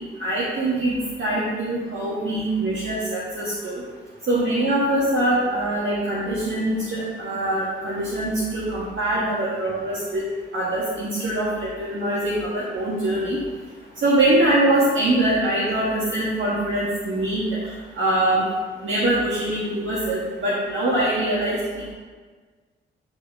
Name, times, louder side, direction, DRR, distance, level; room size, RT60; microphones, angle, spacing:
voice 1, 0.2-3.8 4.3-10.2 10.5-13.4 14.0-17.4 18.0-18.4 18.8-21.6, right 1 dB, 65° right, -7 dB, 1.6 m, -23 dB
9.6 x 4.2 x 3.6 m, 1.5 s
cardioid pair, 65°, 21 cm